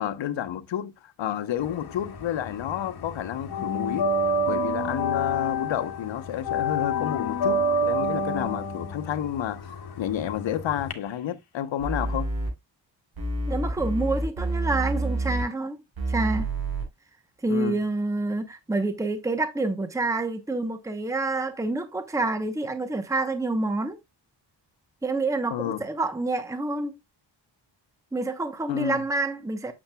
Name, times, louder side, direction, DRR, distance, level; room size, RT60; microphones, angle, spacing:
voice 1, 0.0-4.1 4.5-9.6 10.0-12.3 17.5-17.8 25.5-25.8 28.7-29.0, left 10 dB, 75° left, 0.9 m, -30 dB
sound 1, 1.6-2.8 3.0-10.9, left 1 dB, 60° left, 1.6 m, -27 dB
sound 2, 11.8-12.5 13.2-15.4 16.0-16.8, right 2 dB, 55° right, 4.1 m, -28 dB
voice 2, 13.5-15.8 16.1-16.5 17.4-24.0 25.0-26.9 28.1-29.7, right 2 dB, 5° right, 0.9 m, -27 dB
8.6 x 7.1 x 2.3 m
wide cardioid pair, 150°, 45 cm